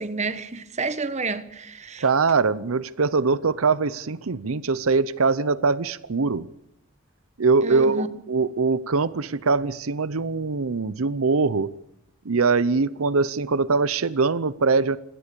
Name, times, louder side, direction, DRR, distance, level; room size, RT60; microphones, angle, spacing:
voice 1, 0.0-2.0 7.6-8.2, right 3 dB, 30° right, 1.2 m, -30 dB
voice 2, 2.0-6.5 7.4-11.7 12.3-15.0, right 4 dB, 80° right, 0.7 m, -22 dB
26.0 x 17.0 x 6.9 m
head